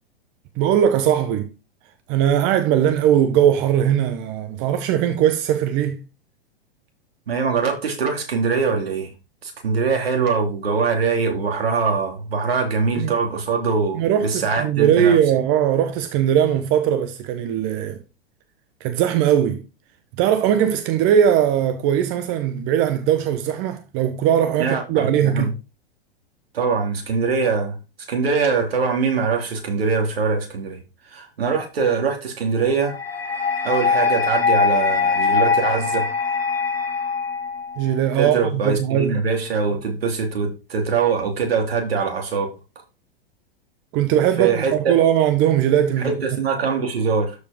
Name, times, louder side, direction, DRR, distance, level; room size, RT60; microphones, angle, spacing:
voice 1, 0.6-1.5 2.1-6.0 13.0-13.1 13.9-18.0 18.8-19.6 20.2-25.5 37.8-39.2 43.9-46.1, right 10 dB, 40° right, 1.1 m, -19 dB
voice 2, 7.3-9.1 9.4-15.2 24.6-25.5 26.5-27.8 28.1-30.8 31.1-32.9 33.6-36.1 38.2-42.5 44.4-44.9 46.0-47.4, right 5 dB, 75° right, 2.9 m, -22 dB
sound 1, 32.9-37.9, left 5 dB, 90° left, 1.7 m, -22 dB
13.0 x 4.9 x 3.6 m
hypercardioid pair, 105°, 30 cm